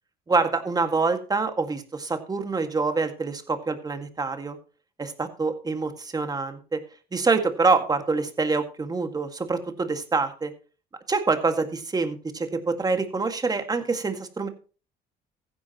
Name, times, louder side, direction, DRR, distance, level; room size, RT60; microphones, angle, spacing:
voice 1, 0.3-4.6 5.0-6.8 7.1-10.5 11.1-14.5, right 4 dB, 20° right, 7 dB, 2.0 m, -26 dB
15.0 x 10.5 x 3.0 m, 0.36 s
cardioid pair, 110°, 17 cm